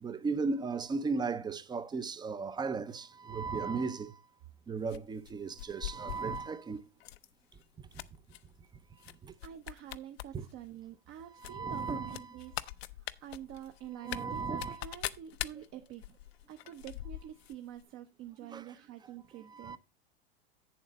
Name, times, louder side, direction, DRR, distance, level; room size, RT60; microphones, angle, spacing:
voice 1, 0.0-4.2 4.7-6.9 7.8-7.9 9.2-9.3 10.3-10.5 11.3-12.4 14.0-14.8 18.5-18.7 19.4-19.8, right 4 dB, 15° right, 0.6 m, -36 dB
sound 1, 4.9-6.5 7.0-7.3 7.6-8.4 9.0-9.1 9.4-10.3 10.6-10.7 11.4-17.5 17.8-17.9, left 15 dB, 70° left, 0.7 m, -42 dB
voice 2, 9.4-12.6 13.0-16.0 16.5-19.8, right 11 dB, 40° right, 0.9 m, -47 dB
8.4 x 7.3 x 4.1 m
hypercardioid pair, 115°, 32 cm